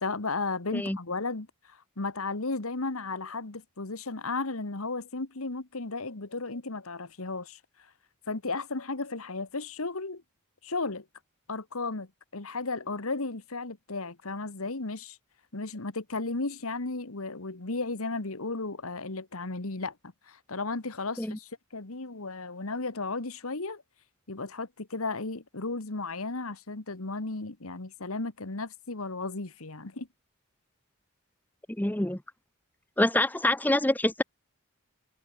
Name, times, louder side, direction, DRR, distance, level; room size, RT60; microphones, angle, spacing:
voice 1, 0.0-7.6 8.3-10.2 10.6-11.1 11.5-15.2 15.5-20.0 20.3-23.8 24.3-30.1, left 3 dB, 75° left, 1.6 m, -34 dB
voice 2, 31.8-32.2 33.0-34.2, left 1 dB, 10° left, 0.7 m, -26 dB
head